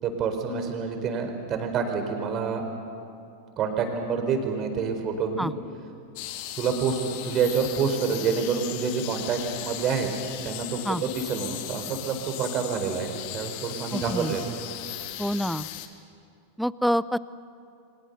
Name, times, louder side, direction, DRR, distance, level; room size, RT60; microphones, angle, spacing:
voice 1, 0.0-2.6 3.6-5.5 6.5-10.1 10.4-14.5, right 6 dB, 30° right, 5 dB, 4.4 m, -27 dB
sound 1, 6.2-15.9, left 13 dB, 45° left, 1.8 m, -37 dB
voice 2, 13.9-14.3 15.2-15.7 16.6-17.2, equal, ahead, 18 dB, 0.6 m, -26 dB
30.0 x 25.0 x 6.9 m, 2.5 s
figure-of-eight pair, 90°, 0 cm